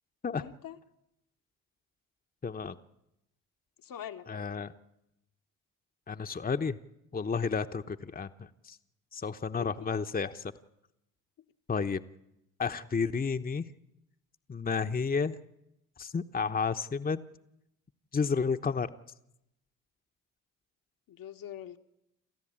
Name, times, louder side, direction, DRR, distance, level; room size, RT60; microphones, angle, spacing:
voice 1, 0.4-0.8 3.8-4.3 9.6-9.9 21.1-21.8, left 10 dB, 60° left, 5 dB, 1.4 m, -43 dB
voice 2, 2.4-2.7 4.3-4.7 6.1-6.8 7.1-8.8 9.1-10.4 11.7-12.0 12.6-13.6 14.5-15.4 16.0-17.2 18.1-18.9, left 5 dB, 25° left, 8 dB, 1.0 m, -31 dB
28.0 x 14.5 x 8.8 m, 0.87 s
hypercardioid pair, 50°, 38 cm